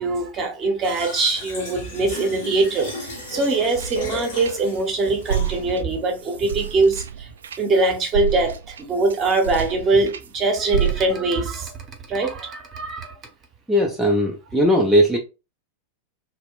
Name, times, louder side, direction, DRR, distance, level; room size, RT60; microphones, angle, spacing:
voice 1, 0.0-7.3 7.6-11.7 12.1-13.2, right 3 dB, 30° right, 0.8 m, -22 dB
Fill (with liquid), 0.8-5.8, left 2 dB, 55° left, 1.0 m, -35 dB
sound 1, 2.6-4.9 5.2-10.3 10.7-11.4, right 9 dB, 65° right, 0.3 m, -30 dB
voice 2, 13.7-15.2, equal, ahead, 0.5 m, -18 dB
2.2 x 2.1 x 3.5 m
figure-of-eight pair, 90°, 0 cm